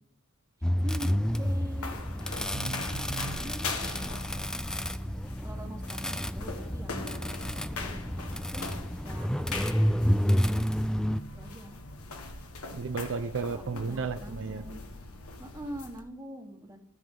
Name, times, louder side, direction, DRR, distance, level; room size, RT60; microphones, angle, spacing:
sound 1, 0.6-11.2, equal, 5° left, 0.3 m, -30 dB
sound 2, 0.7-16.0, left 3 dB, 75° left, 1.5 m, -42 dB
voice 1, 0.8-2.8 3.4-4.0 5.2-7.2 7.5-8.7 9.0-10.7 11.3-11.8 13.4-14.9 15.4-16.8, right 1 dB, 15° right, 3 dB, 1.5 m, -44 dB
voice 2, 2.5-3.4 12.7-14.6, right 4 dB, 60° right, 9 dB, 0.6 m, -34 dB
13.5 x 7.0 x 3.8 m, 0.71 s
head